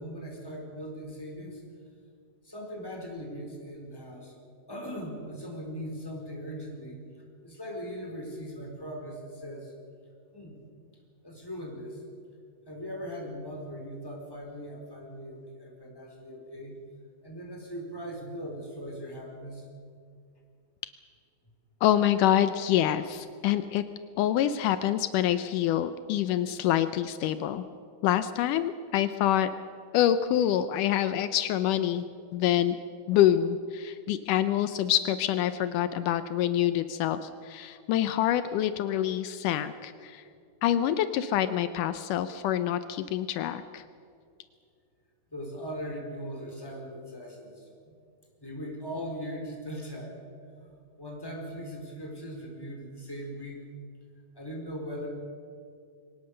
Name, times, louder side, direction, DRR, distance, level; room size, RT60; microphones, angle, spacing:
voice 1, 0.0-1.6 2.4-4.3 4.7-7.0 7.4-9.7 10.3-10.6 11.2-12.0 12.7-16.8 17.2-19.7 45.3-47.9 48.4-50.2 50.5-53.7 54.3-55.1, equal, 5° left, 0 dB, 4.2 m, -39 dB
voice 2, 21.8-23.8 24.2-27.6 28.0-29.5 29.9-32.0 32.3-32.8 33.1-40.2 40.6-43.8, left 11 dB, 90° left, 11 dB, 1.8 m, -26 dB
23.0 x 19.0 x 6.6 m, 2.3 s
omnidirectional pair, 4.6 m